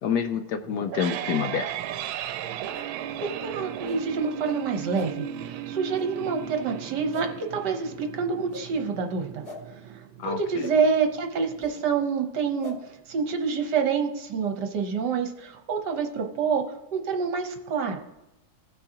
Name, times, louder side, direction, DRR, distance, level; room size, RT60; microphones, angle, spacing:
voice 1, 0.0-1.7 10.2-10.7, left 7 dB, 70° left, 9 dB, 1.0 m, -28 dB
sound 1, 0.6-11.6, right 10 dB, 90° right, 1.4 m, -36 dB
sound 2, 2.7-2.9 3.8-4.0 4.9-5.1 5.9-6.1 7.1-7.3 8.5-8.7 9.4-9.6 10.6-10.7 11.6-11.7 12.6-12.8, left 4 dB, 20° left, 2.2 m, -40 dB
voice 2, 3.2-9.4 9.9-18.0, right 5 dB, 65° right, 4 dB, 1.4 m, -27 dB
17.0 x 6.2 x 2.8 m, 0.94 s
omnidirectional pair, 2.2 m